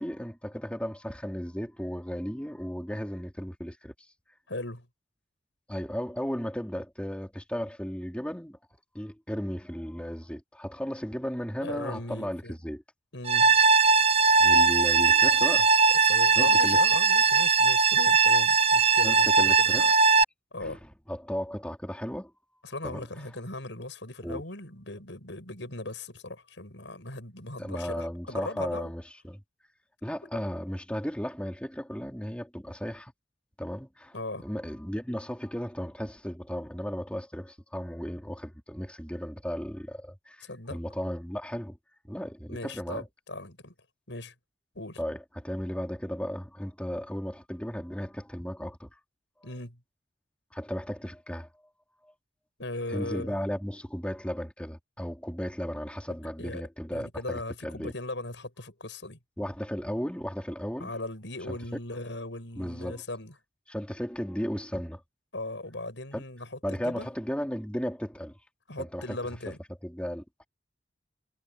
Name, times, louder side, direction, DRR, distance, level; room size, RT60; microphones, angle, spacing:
voice 1, 0.0-3.9 5.7-8.6 8.9-12.8 14.3-15.7 16.3-16.8 19.0-19.9 20.6-22.3 22.8-23.1 24.2-24.4 27.6-29.4 30.0-33.1 33.6-41.8 42.1-43.1 45.0-48.9 50.5-51.5 52.0-52.1 52.9-57.9 59.4-60.9 61.5-61.6 62.6-63.0 63.7-65.0 66.1-66.2 66.6-68.4 68.8-69.2 69.5-69.6 69.8-70.5, equal, 5° left, 3.9 m, -35 dB
voice 2, 4.5-4.9 11.6-12.5 13.1-13.6 16.0-19.9 20.5-20.8 22.6-28.9 34.1-34.5 40.4-40.8 42.5-43.7 44.1-44.3 44.7-45.0 49.4-49.8 52.6-53.3 56.4-56.6 56.9-59.2 60.8-63.3 65.3-67.1 68.7-69.6, left 2 dB, 80° left, 6.1 m, -38 dB
sound 1, 13.3-20.2, right 4 dB, 35° right, 1.2 m, -20 dB
head